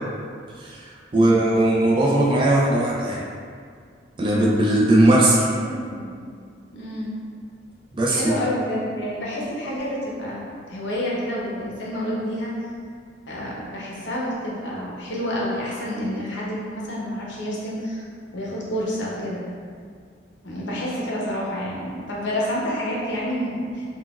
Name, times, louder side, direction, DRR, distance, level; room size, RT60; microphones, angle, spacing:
voice 1, 0.6-3.2 4.2-5.4 7.9-8.4, right 1 dB, 25° right, -4 dB, 0.3 m, -19 dB
voice 2, 1.1-1.5 5.3-6.1 6.7-7.1 8.1-12.5 13.3-18.0 18.3-19.4 20.4-23.8, equal, 80° left, -5 dB, 0.7 m, -29 dB
3.8 x 2.2 x 2.3 m, 2.1 s
head